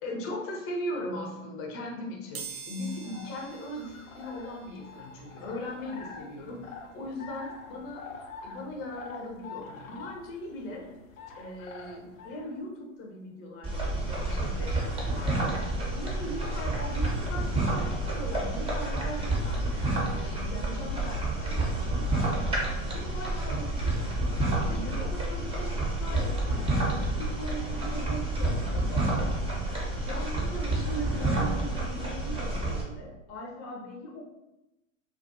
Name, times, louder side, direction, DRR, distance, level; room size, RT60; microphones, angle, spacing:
voice 1, 0.0-8.1 8.4-10.9 11.4-15.6 15.9-19.6 20.1-22.6 22.9-23.9 24.4-29.3 30.1-34.2, left 1 dB, 35° left, -1 dB, 0.7 m, -39 dB
sound 1, 2.3-13.0 13.5-13.6 14.7-14.8 15.1-17.2 17.6-20.2 20.5-20.7 21.0-21.1, right 5 dB, 75° right, 0.6 m, -50 dB
sound 2, 2.8-12.6, left 4 dB, 80° left, 0.5 m, -46 dB
sound 3, 13.6-32.8, right 2 dB, 15° right, 0.7 m, -29 dB
2.4 x 2.3 x 2.5 m, 0.94 s
hypercardioid pair, 95°, 40 cm